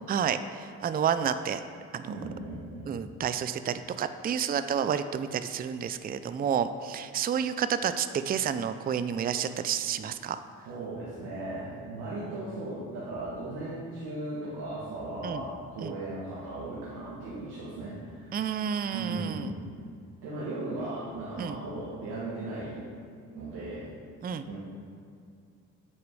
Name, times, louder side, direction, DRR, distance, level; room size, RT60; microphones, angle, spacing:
voice 1, 0.1-1.6 1.9-2.1 2.9-10.4 15.2-15.4 15.8-15.9 18.3-19.5 21.4-21.6 24.2-24.4, right 8 dB, 25° right, 11 dB, 0.4 m, -30 dB
voice 2, 2.1-2.9 10.6-18.3 18.9-19.7 20.2-22.8 23.3-23.9 24.5-24.6, right 2 dB, 80° right, -8 dB, 1.7 m, -37 dB
8.3 x 4.8 x 4.8 m, 2.3 s
hypercardioid pair, 50°, 39 cm